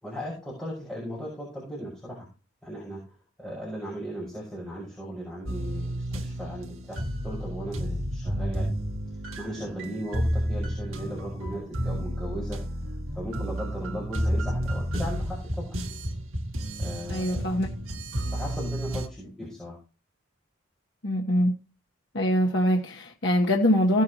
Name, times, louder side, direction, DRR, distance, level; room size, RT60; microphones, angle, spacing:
voice 1, 0.0-2.3 2.6-7.0 7.2-8.7 9.4-12.6 12.9-16.0 16.8-17.4 18.2-19.8, equal, 5° left, 5.7 m, -37 dB
sound 1, 5.5-19.1, equal, 75° right, 1.6 m, -31 dB
voice 2, 17.1-17.7 21.0-21.6 22.1-24.0, equal, 55° left, 1.4 m, -23 dB
17.0 x 7.1 x 3.1 m
head